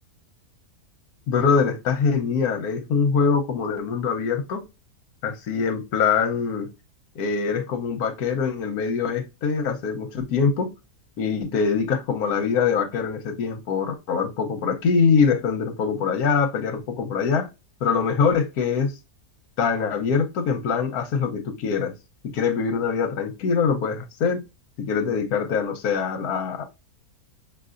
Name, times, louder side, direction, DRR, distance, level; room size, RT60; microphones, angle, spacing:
voice 1, 1.3-4.6 5.2-6.7 7.1-10.7 11.2-17.5 17.8-18.9 19.6-21.9 22.3-24.4 24.9-26.6, left 5 dB, 75° left, 1.3 m, -23 dB
6.0 x 2.7 x 2.4 m
omnidirectional pair, 1.7 m